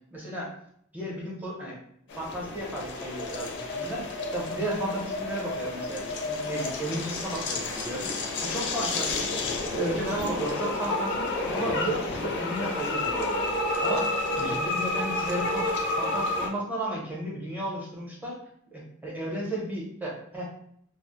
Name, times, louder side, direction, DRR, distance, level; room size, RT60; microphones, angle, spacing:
voice 1, 0.1-0.5 0.9-1.8 2.2-4.0 4.3-9.3 9.7-13.5 13.8-18.4 18.7-20.5, right 1 dB, 10° right, -4 dB, 0.7 m, -34 dB
sound 1, 2.1-16.5, left 2 dB, 55° left, 0.4 m, -30 dB
2.0 x 2.0 x 2.9 m, 0.67 s
head